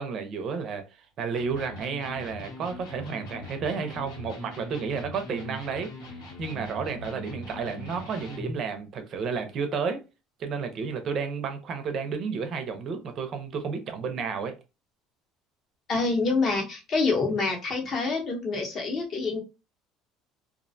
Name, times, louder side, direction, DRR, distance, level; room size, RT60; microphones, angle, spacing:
voice 1, 0.0-5.9 6.4-10.0 10.4-14.5, right 5 dB, 40° right, 0.5 m, -32 dB
Electric guitar, 1.3-8.6, left 2 dB, 90° left, 1.1 m, -41 dB
voice 2, 15.9-19.4, left 3 dB, 35° left, 0.7 m, -26 dB
2.4 x 2.1 x 2.5 m
cardioid pair, 160°, 0 cm